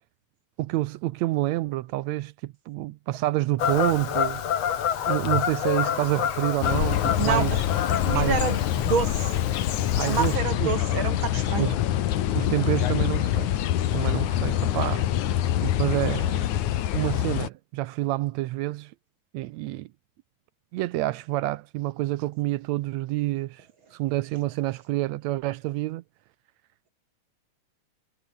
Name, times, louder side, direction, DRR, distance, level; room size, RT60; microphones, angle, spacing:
voice 1, 0.6-4.4 5.1-7.6 8.1-8.4 10.0-10.7 11.6-11.8 12.3-13.5 13.9-15.1 15.6-16.5 16.9-18.9 19.3-19.9 20.7-23.7 23.9-26.0, right 17 dB, 80° right, 1.6 m, -28 dB
Fowl / Bird vocalization bird call bird song, 3.6-10.4, left 9 dB, 55° left, 2.8 m, -28 dB
sound 1, 6.6-17.5, left 12 dB, 70° left, 2.7 m, -25 dB
voice 2, 7.9-8.6 8.8-9.2 10.1-11.7, right 6 dB, 45° right, 2.3 m, -27 dB
omnidirectional pair, 3.6 m